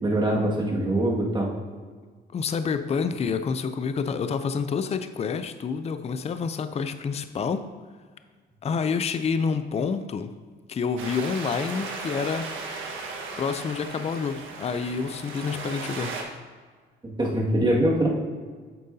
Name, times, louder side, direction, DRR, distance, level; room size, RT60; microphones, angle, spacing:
voice 1, 0.0-1.5 17.2-18.1, right 1 dB, 25° right, -3 dB, 2.0 m, -23 dB
voice 2, 2.3-7.7 8.6-10.3 10.7-12.5 13.4-16.2, left 5 dB, 35° left, 10 dB, 0.5 m, -28 dB
sound 1, 11.0-16.2, right 3 dB, 80° right, 1.4 m, -36 dB
8.6 x 7.6 x 2.8 m, 1.5 s
cardioid pair, 90°, 20 cm